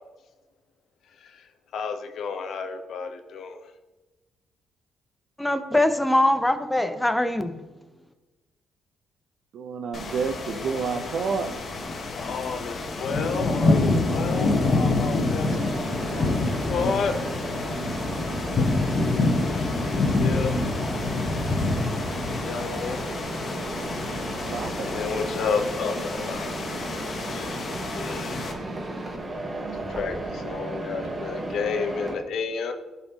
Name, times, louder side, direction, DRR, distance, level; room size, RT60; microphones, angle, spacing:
voice 1, 1.2-3.6 12.2-16.3 16.7-17.2 19.9-20.6 22.2-23.0 24.6-26.6 27.3-28.5 30.0-32.7, left 5 dB, 70° left, 6 dB, 0.8 m, -31 dB
voice 2, 5.4-7.5, left 1 dB, 10° left, 9 dB, 0.7 m, -22 dB
voice 3, 9.5-11.5 24.2-25.1, right 5 dB, 70° right, 6 dB, 0.7 m, -30 dB
sound 1, 9.9-28.5, left 2 dB, 50° left, 1.2 m, -27 dB
Mechanisms, 15.4-32.1, right 1 dB, 30° right, 1.2 m, -34 dB
12.0 x 4.2 x 2.9 m, 1.2 s
cardioid pair, 90°, 0 cm